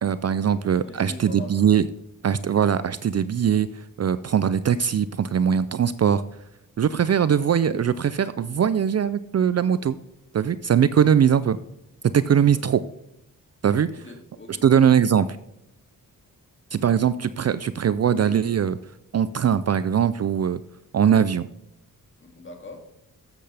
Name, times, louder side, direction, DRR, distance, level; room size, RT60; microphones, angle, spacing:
voice 1, 0.0-1.8 2.2-6.2 6.8-10.0 10.3-11.6 12.1-12.8 13.6-13.9 14.6-15.4 16.7-18.8 19.1-20.6 20.9-21.5, right 8 dB, 45° right, 15 dB, 0.4 m, -21 dB
voice 2, 0.7-1.6 12.4-12.6 13.9-14.6 22.2-22.9, left 2 dB, 35° left, 3 dB, 2.4 m, -42 dB
13.0 x 7.8 x 3.4 m, 0.84 s
wide cardioid pair, 130°, 35 cm